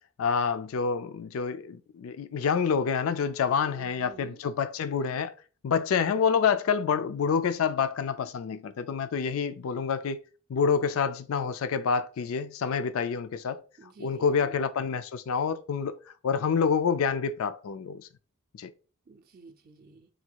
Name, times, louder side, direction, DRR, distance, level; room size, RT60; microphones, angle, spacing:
voice 1, 0.2-5.3 5.6-10.2 10.5-13.6 14.0-16.0 16.2-18.1 18.6-18.7, left 6 dB, 80° left, 0.4 m, -27 dB
voice 2, 3.6-4.4 13.8-14.6 19.1-20.1, right 3 dB, 45° right, 0.5 m, -49 dB
3.9 x 2.3 x 4.5 m
head